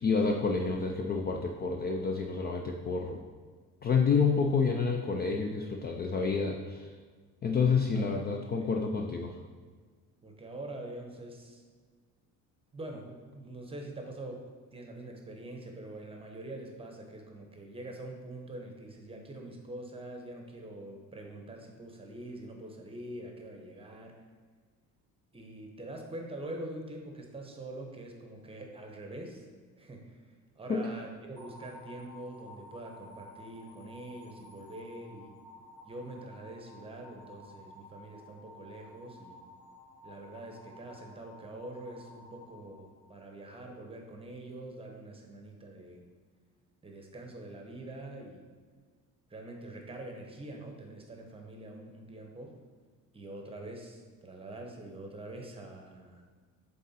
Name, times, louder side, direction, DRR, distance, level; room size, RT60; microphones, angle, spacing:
voice 1, 0.0-3.2 3.8-6.9 7.4-9.4 30.7-30.9, left 5 dB, 30° left, 3 dB, 0.4 m, -29 dB
voice 2, 7.9-8.7 10.2-11.6 12.7-24.1 25.3-29.5 29.8-35.3 35.8-39.5 40.0-46.1 46.8-48.5 49.3-52.6 53.1-56.2, right 1 dB, 15° right, 2 dB, 0.9 m, -44 dB
sound 1, 31.4-43.5, left 1 dB, 15° left, 1.3 m, -53 dB
7.7 x 3.7 x 4.2 m, 1.5 s
cardioid pair, 130°, 34 cm